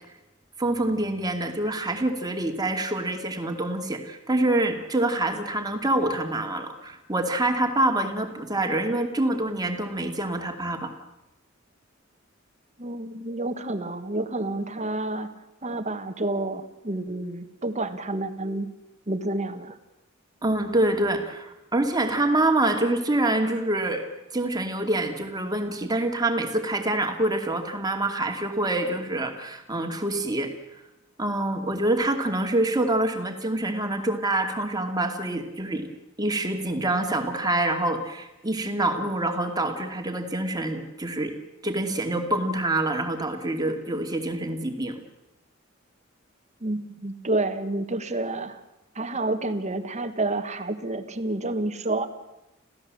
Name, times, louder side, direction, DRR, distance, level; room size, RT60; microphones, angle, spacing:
voice 1, 0.6-10.9 20.4-24.0 24.3-30.5 31.2-35.9 36.2-41.3 41.6-45.0, right 1 dB, 20° right, 4 dB, 2.5 m, -26 dB
voice 2, 12.8-15.3 15.6-18.7 19.1-19.8 46.6-48.6 48.9-52.1, right 2 dB, 35° right, 9 dB, 1.6 m, -29 dB
26.5 x 16.0 x 7.6 m, 0.95 s
head